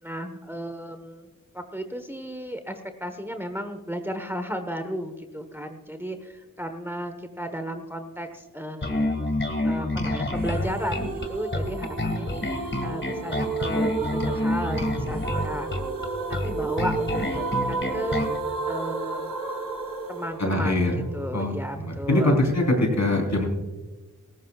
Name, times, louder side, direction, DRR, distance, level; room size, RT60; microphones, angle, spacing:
voice 1, 0.0-1.3 1.5-9.2 9.6-15.7 16.3-18.4 18.7-19.3 20.1-20.9 21.1-22.4, equal, 5° right, 7 dB, 1.1 m, -34 dB
Bass guitar, 8.8-18.4, left 1 dB, 35° left, 2.0 m, -28 dB
sound 1, 10.4-21.4, right 4 dB, 80° right, 1.9 m, -32 dB
voice 2, 20.4-20.9 21.3-23.5, left 1 dB, 55° left, 1 dB, 3.9 m, -23 dB
18.5 x 15.0 x 2.4 m, 1.2 s
cardioid pair, 45°, 33 cm